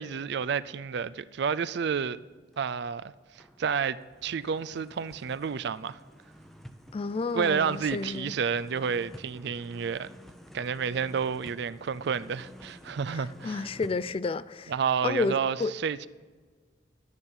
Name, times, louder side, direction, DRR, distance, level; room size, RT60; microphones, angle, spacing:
voice 1, 0.0-2.2 2.6-6.0 7.3-10.1 10.5-13.7 14.7-16.1, right 6 dB, 60° right, 0.4 m, -30 dB
sound 1, 2.5-2.7 3.2-14.1, equal, ahead, 0.6 m, -50 dB
voice 2, 6.9-8.3 13.1-14.7 15.0-15.7, left 3 dB, 30° left, 0.3 m, -31 dB
11.5 x 9.7 x 5.5 m
head